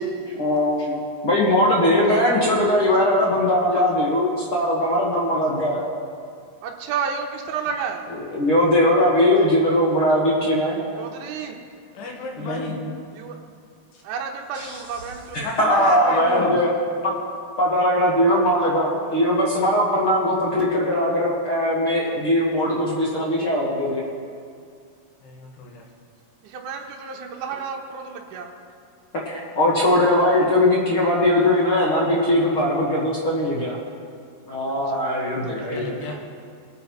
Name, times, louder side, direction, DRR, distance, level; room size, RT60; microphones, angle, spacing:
voice 1, 0.4-1.0 1.2-5.8 8.3-10.8 12.4-12.8 14.5-14.7 15.3-16.7 17.0-17.1 17.6-24.0 29.2-33.8 34.5-35.9, left 1 dB, 55° left, -5 dB, 1.5 m, -20 dB
voice 2, 3.5-3.9 6.6-8.1 11.0-11.6 13.1-13.4 14.0-15.5 16.0-16.1 26.4-28.5 34.9-35.0 35.4-36.2, right 6 dB, 70° right, 0 dB, 2.1 m, -32 dB
voice 3, 11.9-12.8 13.9-14.0 15.4-16.6 25.2-25.8 35.5-36.2, left 2 dB, 90° left, 0 dB, 3.5 m, -32 dB
22.5 x 9.3 x 3.1 m, 2.2 s
omnidirectional pair, 4.5 m